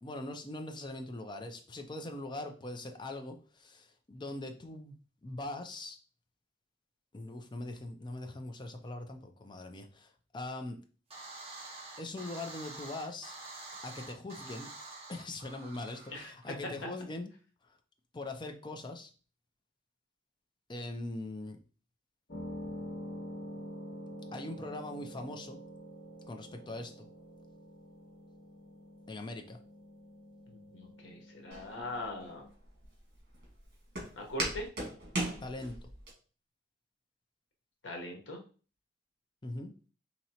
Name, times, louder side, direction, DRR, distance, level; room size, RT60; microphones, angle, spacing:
voice 1, 0.0-6.0 7.1-10.8 12.0-13.3 13.8-14.7 15.1-17.3 17.6-17.8 18.1-19.1 20.7-21.6 24.3-25.6 26.3-27.1 29.1-29.6 35.4-35.9 39.4-39.7, left 2 dB, 25° left, 5 dB, 0.5 m, -41 dB
sound 1, 11.1-16.5, right 2 dB, 35° right, 1.0 m, -47 dB
sound 2, 22.3-32.5, left 1 dB, 55° left, 1.1 m, -47 dB
voice 2, 30.5-32.4 34.1-34.7 37.8-38.4, left 1 dB, 80° left, 1 dB, 1.1 m, -41 dB
Walk footsteps, 31.5-36.1, right 2 dB, 60° right, 1.6 m, -39 dB
4.2 x 2.9 x 2.8 m, 0.38 s
head